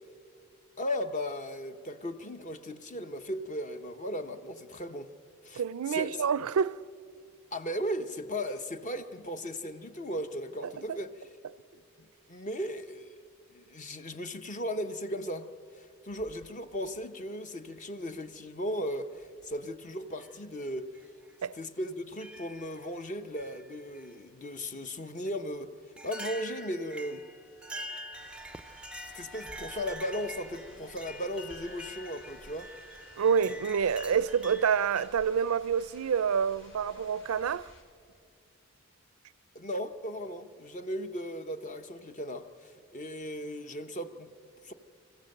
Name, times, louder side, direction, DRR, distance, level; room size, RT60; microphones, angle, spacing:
voice 1, 0.8-5.1 5.4-6.3 7.5-11.3 12.3-13.1 13.5-15.5 15.8-21.1 21.5-27.3 29.1-32.7 39.5-44.3 44.6-44.7, equal, 35° left, 0.9 m, -37 dB
voice 2, 5.6-6.8 10.6-11.0 21.4-21.6 33.2-37.7, right 7 dB, 80° right, 0.4 m, -28 dB
sound 1, 16.1-17.0 18.1-18.2 19.2-19.5 20.1-20.3 20.9-21.1 22.2-22.9 23.4-24.1 25.3-25.4 26.0-35.1, equal, 5° right, 0.4 m, -45 dB
sound 2, 28.1-37.8, left 1 dB, 55° left, 3.5 m, -55 dB
26.0 x 15.0 x 7.8 m
head